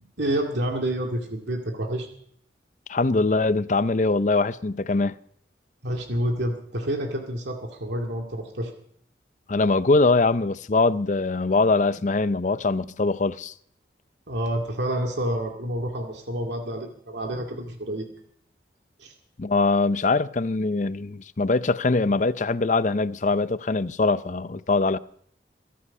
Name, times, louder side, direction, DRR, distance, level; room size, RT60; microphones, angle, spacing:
voice 1, 0.2-2.1 5.8-8.7 14.3-18.1 19.0-19.1, right 1 dB, 75° right, 2.2 m, -28 dB
voice 2, 2.9-5.1 9.5-13.5 19.4-25.0, left 3 dB, 45° left, 0.6 m, -22 dB
23.0 x 11.5 x 5.4 m
head